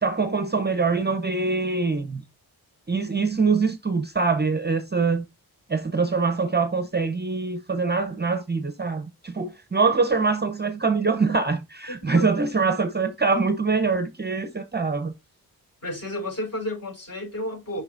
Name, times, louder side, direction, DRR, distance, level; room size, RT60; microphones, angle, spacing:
voice 1, 0.0-2.2 2.9-5.2 5.7-15.1, right 4 dB, 25° right, 0.8 m, -24 dB
voice 2, 15.8-17.8, left 1 dB, 40° left, 4.4 m, -31 dB
7.6 x 5.8 x 2.5 m
cardioid pair, 50°, 39 cm